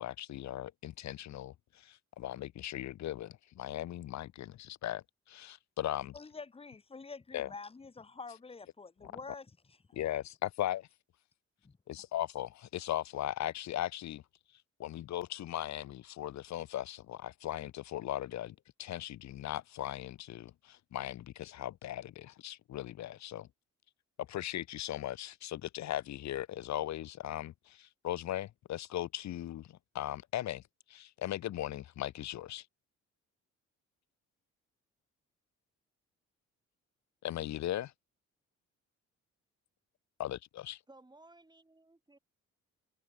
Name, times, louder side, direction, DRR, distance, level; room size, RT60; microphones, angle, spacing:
voice 1, 0.0-6.1 7.3-7.5 10.0-10.9 11.9-14.2 14.8-23.5 24.2-30.6 30.9-32.7 37.2-37.9 40.2-40.8, left 13 dB, 65° left, 1.1 m, -38 dB
voice 2, 6.1-9.5 11.6-11.8, left 4 dB, 20° left, 1.0 m, -47 dB
voice 3, 40.9-42.2, right 2 dB, 15° right, 3.9 m, -58 dB
open air
cardioid pair, 90°, 30 cm